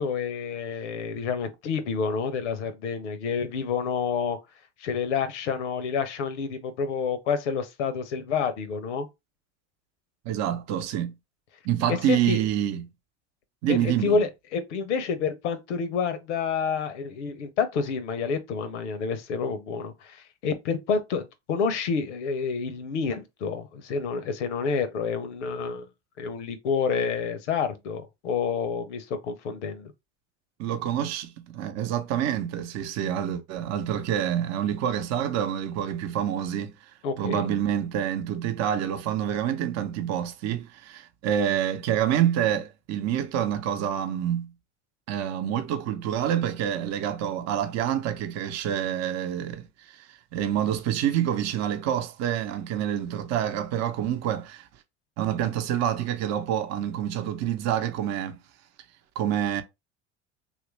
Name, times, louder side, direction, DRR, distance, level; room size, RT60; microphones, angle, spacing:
voice 1, 0.0-4.4 4.8-9.1 11.9-12.4 13.7-25.9 26.2-29.9 37.0-37.4, left 5 dB, 80° left, 0.7 m, -28 dB
voice 2, 10.2-11.1 11.6-12.8 13.6-14.2 30.6-36.7 37.2-44.5 45.1-54.7 55.2-58.4 59.2-59.6, right 10 dB, 50° right, 0.7 m, -27 dB
3.0 x 2.5 x 3.1 m
hypercardioid pair, 75°, 35 cm